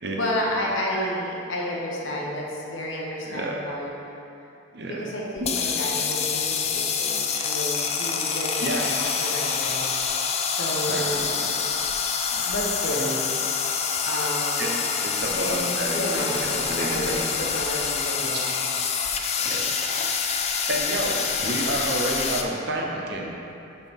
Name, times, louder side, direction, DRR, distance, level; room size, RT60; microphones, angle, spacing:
voice 1, 0.1-3.9 4.8-9.8 10.4-11.4 12.5-13.2 14.0-14.8 15.3-15.6 15.9-18.5, equal, 85° left, -3 dB, 1.1 m, -31 dB
voice 2, 1.7-2.1 3.2-3.6 4.7-5.1 5.4-6.0 7.4-7.5 8.6-8.9 10.9-11.7 12.3-12.5 14.6-17.5 18.4-18.5 19.4-19.9 20.7-23.4, right 1 dB, 60° right, -1 dB, 0.8 m, -31 dB
sound 1, 5.4-22.4, left 6 dB, 35° left, 0.4 m, -26 dB
6.1 x 5.5 x 3.6 m, 2.7 s
head